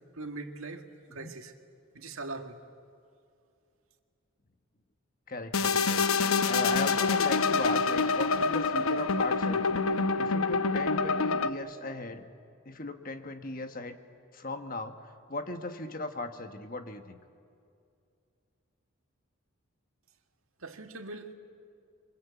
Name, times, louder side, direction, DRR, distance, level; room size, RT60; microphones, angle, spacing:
voice 1, 0.1-0.9 1.1-1.5 1.9-2.6 20.6-21.3, right 3 dB, 85° right, 5 dB, 1.9 m, -41 dB
voice 2, 5.3-12.3 12.6-14.0 14.3-17.2, left 2 dB, 40° left, 7 dB, 1.4 m, -37 dB
sound 1, 5.5-11.5, left 4 dB, 90° left, 0.9 m, -26 dB
28.0 x 24.5 x 8.4 m, 2.5 s
head